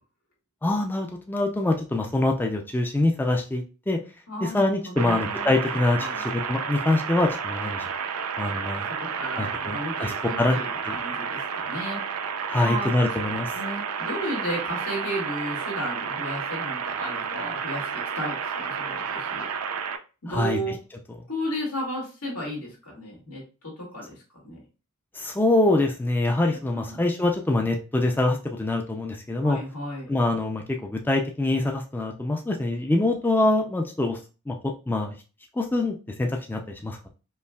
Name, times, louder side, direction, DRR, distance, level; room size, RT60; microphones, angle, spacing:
voice 1, 0.6-4.0 4.4-7.8 8.4-8.9 9.4-10.6 10.8-11.0 12.5-13.5 20.3-20.6 25.1-29.6 30.1-34.2 34.5-35.2 35.5-37.1, left 2 dB, 10° left, 2 dB, 0.4 m, -24 dB
voice 2, 4.3-5.6 6.0-6.2 8.9-12.0 12.6-19.5 20.2-20.7 21.3-24.6 26.7-27.0 29.4-30.1, equal, 80° left, -3 dB, 2.0 m, -34 dB
sound 1, 5.0-20.0, right 6 dB, 90° right, 0.5 m, -31 dB
5.3 x 2.4 x 2.2 m, 0.33 s
head